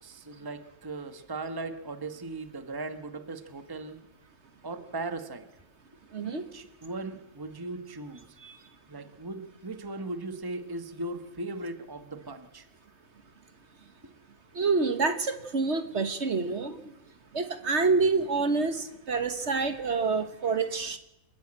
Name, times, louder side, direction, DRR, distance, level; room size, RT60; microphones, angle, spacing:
voice 1, 0.0-4.0 4.6-5.5 6.2-8.4 8.9-12.7 14.0-14.1, right 2 dB, 15° right, 9 dB, 1.3 m, -38 dB
voice 2, 6.1-6.4 8.4-8.5 14.5-16.8 17.3-21.0, right 4 dB, 55° right, 9 dB, 1.6 m, -27 dB
28.5 x 10.5 x 8.8 m, 0.91 s
omnidirectional pair, 1.4 m